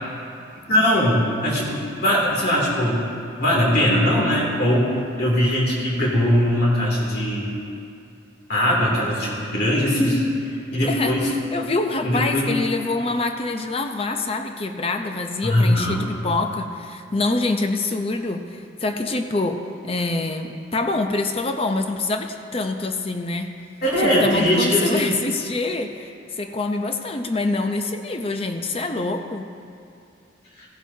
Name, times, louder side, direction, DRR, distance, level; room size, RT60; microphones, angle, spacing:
voice 1, 0.7-3.0 3.4-7.6 8.5-10.2 10.7-11.3 12.0-12.5 15.4-16.1 23.8-25.0, equal, 50° left, -4 dB, 2.8 m, -20 dB
voice 2, 10.8-23.5 24.0-29.5, left 3 dB, 30° left, 5 dB, 0.6 m, -25 dB
16.5 x 11.0 x 2.8 m, 2.6 s
head